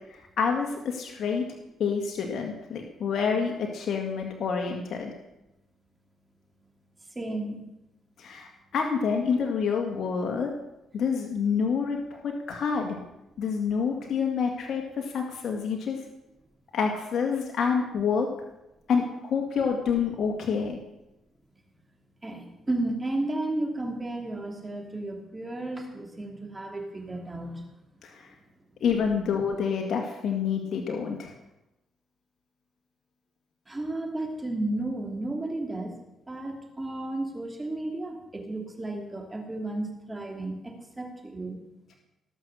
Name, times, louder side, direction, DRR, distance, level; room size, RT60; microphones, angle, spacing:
voice 1, 0.1-1.4 1.8-5.1 8.2-10.5 10.9-13.0 13.4-16.0 16.7-18.3 18.9-20.8 28.0-28.3 28.8-31.3, left 6 dB, 60° left, 1 dB, 1.8 m, -28 dB
voice 2, 7.1-7.6 22.2-27.6 33.7-35.9 36.3-41.6, right 2 dB, 20° right, 3 dB, 2.7 m, -33 dB
19.0 x 6.3 x 6.9 m, 0.93 s
cardioid pair, 90°, 0 cm